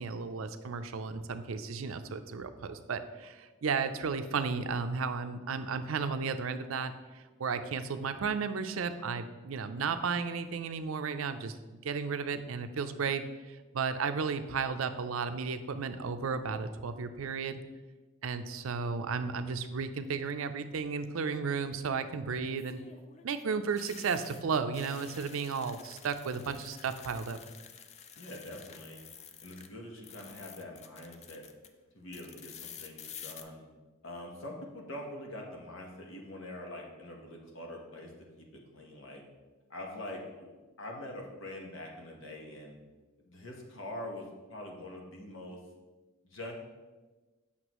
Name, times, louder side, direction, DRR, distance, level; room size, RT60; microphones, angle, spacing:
voice 1, 0.0-6.9 7.4-17.6 18.2-22.8 23.2-27.4, right 5 dB, 80° right, 9 dB, 0.5 m, -34 dB
sound 1, 20.1-20.5 22.4-29.7 30.0-31.7 32.1-33.4, left 7 dB, 30° left, 0.4 m, -50 dB
voice 2, 28.2-29.0 29.4-31.4 31.9-33.7 34.0-38.1 38.4-39.2 39.7-40.5 40.8-42.7 43.2-45.6 46.2-46.7, left 1 dB, 65° left, 0 dB, 1.2 m, -44 dB
7.9 x 5.8 x 3.0 m, 1.3 s
head